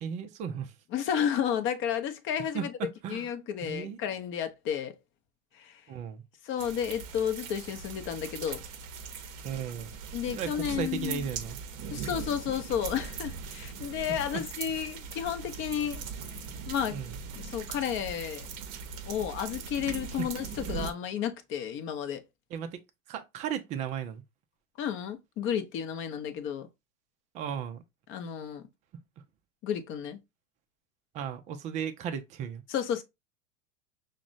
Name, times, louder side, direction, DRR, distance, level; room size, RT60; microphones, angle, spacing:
voice 1, 0.0-0.7 2.5-3.3 3.6-4.0 5.9-6.2 9.4-9.9 10.3-11.6 14.3-14.4 16.9-17.2 20.1-20.3 22.5-22.8 23.1-24.2 27.3-27.8 31.1-32.6, right 8 dB, 20° right, 0.3 m, -35 dB
voice 2, 0.9-2.7 3.1-4.9 5.5-5.8 6.4-8.6 10.1-11.2 11.9-16.0 16.3-16.4 16.7-17.0 17.4-18.5 19.0-22.2 24.8-26.7 28.1-28.7 29.6-30.2 32.7-33.0, left 9 dB, 30° left, 0.6 m, -32 dB
sound 1, 6.6-20.9, right 6 dB, 40° right, 0.7 m, -40 dB
5.9 x 2.1 x 2.4 m
hypercardioid pair, 95°, 41 cm